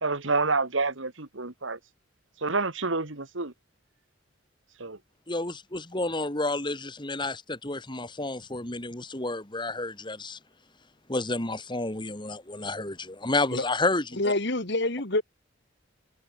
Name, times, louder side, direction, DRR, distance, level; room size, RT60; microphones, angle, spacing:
voice 1, 0.0-1.8 2.4-3.5 4.8-5.0, right 3 dB, 70° right, 2.2 m, -28 dB
voice 2, 5.3-10.4 11.1-14.3, left 2 dB, 25° left, 2.5 m, -30 dB
voice 3, 14.2-15.2, left 2 dB, 55° left, 2.8 m, -26 dB
head